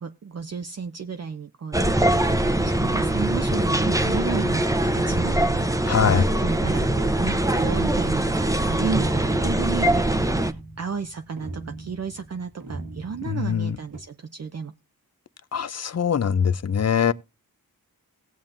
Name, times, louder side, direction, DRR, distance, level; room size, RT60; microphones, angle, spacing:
voice 1, 0.0-5.4 5.9-14.7, right 5 dB, 45° right, 0.6 m, -33 dB
sound 1, 1.7-10.5, right 1 dB, 10° right, 0.7 m, -22 dB
voice 2, 5.9-6.2 13.3-13.8 15.5-17.1, left 7 dB, 45° left, 0.5 m, -22 dB
sound 2, 9.9-14.0, right 2 dB, 65° right, 1.5 m, -39 dB
18.0 x 7.3 x 2.6 m
wide cardioid pair, 60°, 37 cm